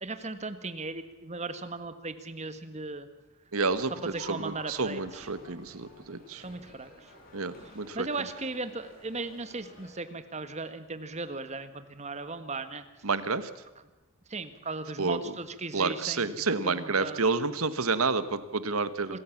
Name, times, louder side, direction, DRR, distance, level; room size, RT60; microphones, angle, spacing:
voice 1, 0.0-3.1 4.0-5.3 6.4-7.1 7.6-12.8 14.3-16.3 16.6-17.2 19.1-19.2, right 3 dB, 30° right, 10 dB, 1.5 m, -37 dB
voice 2, 3.5-3.9 4.2-6.4 7.3-8.1 13.0-13.5 15.0-15.2 15.7-19.1, right 4 dB, 80° right, 13 dB, 1.3 m, -29 dB
sound 1, 3.7-9.9, left 1 dB, 45° left, 5.5 m, -51 dB
26.0 x 14.5 x 7.3 m, 1.1 s
head